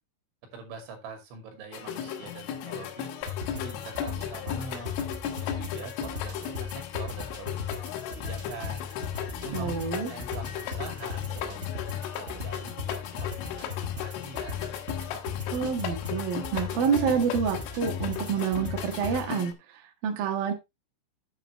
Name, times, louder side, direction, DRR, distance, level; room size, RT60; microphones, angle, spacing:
voice 1, 0.5-3.1 3.4-5.0 5.4-8.9 9.4-14.6, right 4 dB, 75° right, 4.9 m, -44 dB
sound 1, 1.7-19.5, left 9 dB, 85° left, 3.8 m, -36 dB
sound 2, 3.2-19.3, left 6 dB, 25° right, 1.7 m, -37 dB
voice 2, 9.5-10.1 15.5-20.5, right 7 dB, 60° right, 2.9 m, -28 dB
9.3 x 9.1 x 3.2 m
omnidirectional pair, 5.5 m